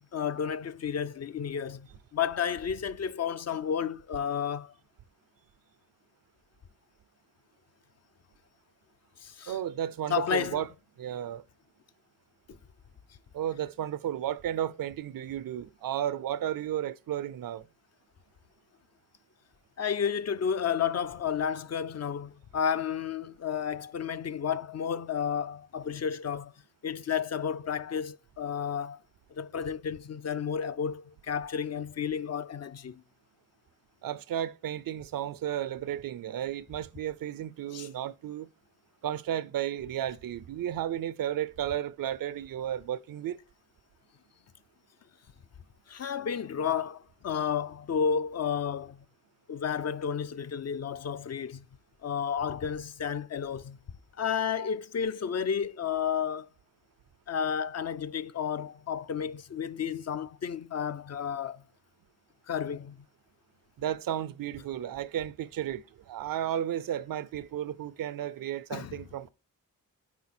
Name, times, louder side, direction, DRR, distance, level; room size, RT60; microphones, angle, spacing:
voice 1, 0.0-4.7 9.2-9.6 10.1-10.6 12.5-12.6 19.8-26.5 26.8-29.0 29.3-33.0 37.7-37.9 45.9-49.0 49.5-51.7 52.0-53.8 54.2-56.5 57.3-61.6 62.5-63.0 68.7-69.0, left 7 dB, 50° left, 0.5 m, -32 dB
voice 2, 9.5-10.7 11.0-11.4 13.3-17.7 34.0-38.5 39.0-43.4 63.8-69.3, right 11 dB, 80° right, 0.5 m, -33 dB
8.3 x 4.7 x 4.3 m
wide cardioid pair, 90°, 34 cm